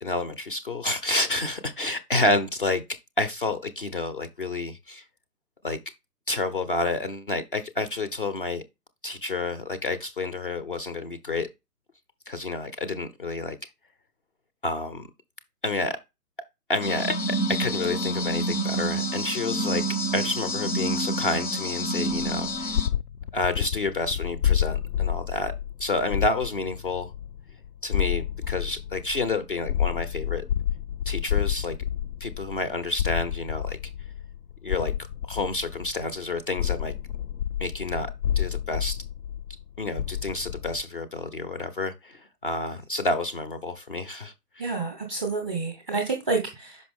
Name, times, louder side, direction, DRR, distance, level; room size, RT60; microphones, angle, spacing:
voice 1, 0.0-2.8 3.2-5.0 5.6-5.8 6.3-8.6 9.0-11.5 12.3-13.6 14.6-15.1 15.6-16.0 16.7-19.8 20.1-22.8 23.3-25.5 25.8-27.1 27.8-30.4 31.1-31.7 32.2-33.8 34.6-34.9 35.3-37.0 37.6-38.1 38.4-39.0 39.8-44.3, left 2 dB, 35° left, 0.7 m, -29 dB
sound 1, 16.8-22.9, right 1 dB, 85° left, 1.3 m, -28 dB
sound 2, 22.1-36.2 36.6-40.8, left 10 dB, 70° left, 0.6 m, -30 dB
voice 2, 44.6-46.8, right 3 dB, 5° right, 0.7 m, -28 dB
5.7 x 5.2 x 3.5 m
figure-of-eight pair, 145°, 48 cm